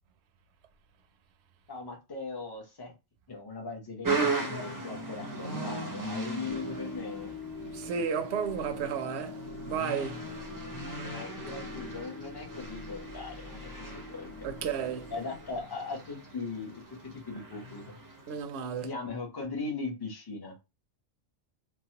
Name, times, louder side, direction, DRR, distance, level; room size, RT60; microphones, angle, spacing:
voice 1, 1.7-2.9 3.3-7.4 10.7-14.3 15.1-16.8 17.1-17.9 18.8-20.6, left 4 dB, 25° left, 0.7 m, -39 dB
sound 1, 4.0-18.4, right 3 dB, 25° right, 0.5 m, -38 dB
sound 2, 6.5-15.6, left 2 dB, 60° left, 0.3 m, -44 dB
voice 2, 7.7-10.3 14.4-15.1 18.3-18.9, right 7 dB, 70° right, 0.8 m, -33 dB
3.1 x 2.2 x 2.8 m
omnidirectional pair, 1.2 m